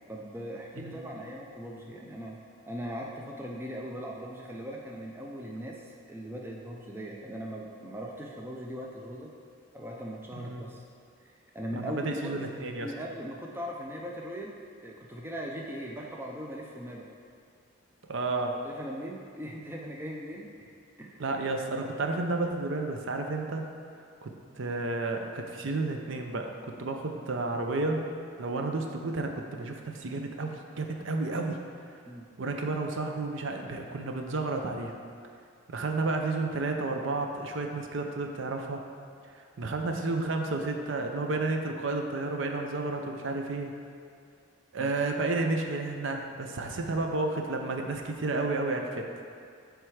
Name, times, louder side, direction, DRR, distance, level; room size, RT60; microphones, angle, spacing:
voice 1, 0.1-2.4 2.7-9.3 9.7-10.8 11.2-12.4 12.7-17.1 18.6-20.7 21.0-21.2 32.1-32.3 44.8-44.9, equal, 10° right, -1 dB, 0.4 m, -39 dB
voice 2, 0.8-1.1 10.4-10.6 11.8-12.9 18.1-18.6 21.2-23.6 24.2-28.0 28.4-31.6 32.4-34.9 35.7-38.8 39.3-43.7 44.7-49.1, right 3 dB, 65° right, 3 dB, 0.5 m, -31 dB
7.6 x 3.4 x 4.8 m, 2.2 s
head